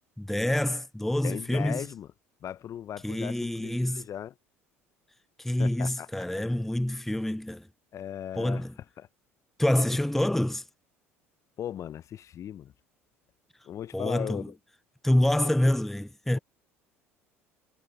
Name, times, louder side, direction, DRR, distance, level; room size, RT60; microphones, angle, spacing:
voice 1, 0.2-1.9 3.0-4.1 5.4-7.7 8.4-8.7 9.6-10.6 13.9-14.5 15.0-16.4, left 1 dB, 5° left, 0.7 m, -27 dB
voice 2, 1.2-2.1 2.4-4.3 5.6-6.1 7.9-8.7 9.0-9.1 11.6-12.7 13.6-14.5 15.4-15.7, left 10 dB, 45° left, 0.8 m, -38 dB
hypercardioid pair, 65°, 7 cm